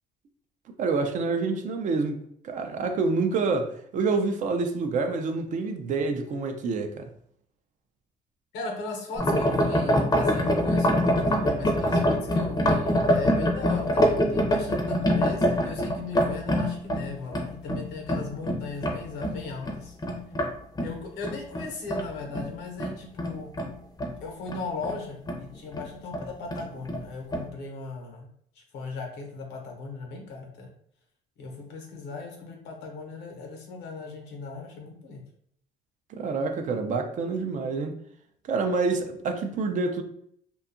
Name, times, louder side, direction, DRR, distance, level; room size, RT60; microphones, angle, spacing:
voice 1, 0.8-7.1 36.1-38.0 38.5-40.0, right 4 dB, 50° right, 0.4 m, -27 dB
voice 2, 8.5-20.0 20.8-23.5 24.2-28.3 28.5-30.7 31.4-35.2, left 3 dB, 80° left, 0.8 m, -37 dB
sound 1, 9.2-20.5 20.7-24.2 24.5-25.0 25.3-25.4 25.7-25.9 26.1-27.0 27.3-27.5, equal, 20° left, 0.5 m, -25 dB
2.6 x 2.3 x 2.5 m
cardioid pair, 110°, 17 cm